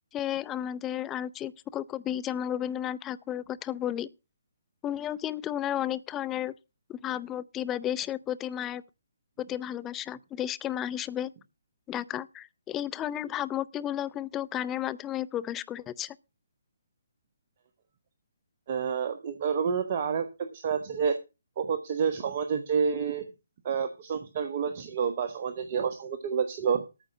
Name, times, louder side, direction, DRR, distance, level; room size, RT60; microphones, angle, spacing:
voice 1, 0.1-4.1 4.8-6.5 6.9-8.8 9.4-11.3 11.9-16.2, left 11 dB, 15° left, 0.6 m, -33 dB
voice 2, 18.7-21.2 21.6-23.2 23.6-26.8, right 6 dB, 40° right, 1.4 m, -29 dB
14.0 x 5.5 x 6.6 m
figure-of-eight pair, 140°, 0 cm